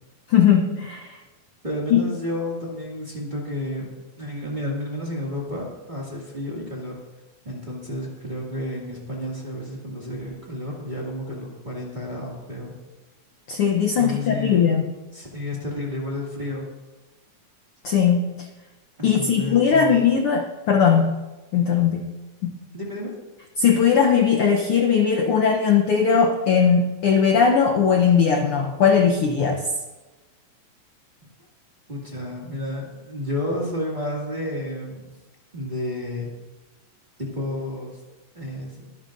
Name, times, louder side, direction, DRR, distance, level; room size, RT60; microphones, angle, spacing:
voice 1, 0.3-1.2 1.9-2.1 13.5-14.8 17.8-18.5 19.0-21.2 21.5-22.1 22.4-22.5 23.6-29.7, left 7 dB, 70° left, 3 dB, 1.4 m, -19 dB
voice 2, 1.6-3.9 4.2-6.9 7.4-12.7 14.0-14.7 15.1-16.7 19.0-20.0 22.7-23.2 31.9-35.1 35.5-36.3 37.2-38.0 38.3-38.9, left 1 dB, 20° right, -4 dB, 1.8 m, -31 dB
22.5 x 10.5 x 2.6 m, 1.1 s
omnidirectional pair, 3.3 m